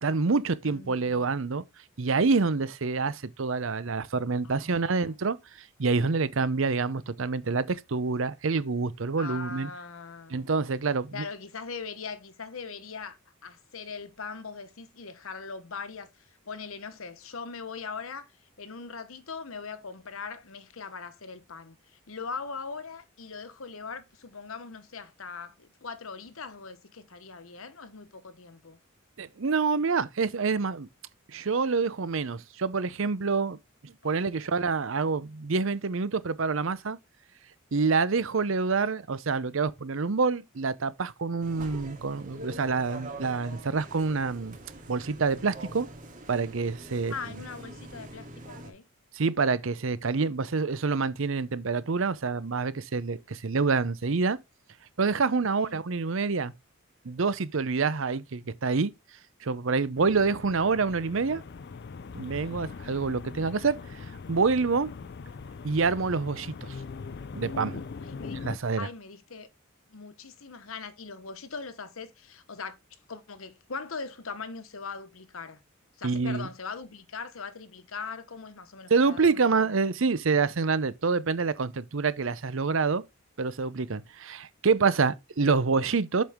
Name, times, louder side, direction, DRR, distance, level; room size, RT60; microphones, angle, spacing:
voice 1, 0.0-1.6 2.0-5.4 5.8-9.7 10.3-11.2 29.2-30.9 31.3-33.6 33.8-37.0 37.7-44.6 44.9-45.9 46.3-47.1 49.1-54.4 55.0-56.5 57.0-58.9 59.4-61.4 62.1-63.8 64.3-64.9 65.6-66.8 67.3-67.8 68.3-68.9 76.0-76.5 78.9-83.0 83.4-86.2, right 4 dB, 65° right, 0.7 m, -27 dB
voice 2, 0.6-1.3 4.4-5.0 9.2-10.5 11.1-18.3 18.6-28.8 34.0-34.4 47.1-48.8 55.5-55.8 67.9-68.4 68.8-69.5 69.9-72.8 73.1-75.6 76.0-79.7, left 5 dB, 75° left, 1.0 m, -41 dB
sound 1, 41.4-48.7, right 1 dB, 40° right, 2.1 m, -44 dB
sound 2, 60.0-68.6, left 4 dB, 50° left, 0.4 m, -41 dB
7.5 x 5.3 x 3.6 m
head